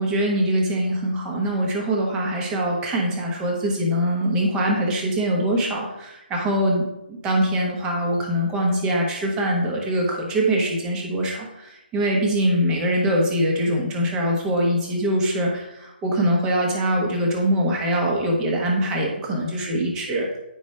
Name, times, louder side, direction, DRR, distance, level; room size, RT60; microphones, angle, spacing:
voice 1, 0.0-20.3, right 1 dB, 15° right, -1 dB, 1.2 m, -23 dB
9.0 x 5.3 x 3.2 m, 0.90 s
figure-of-eight pair, 155°, 6 cm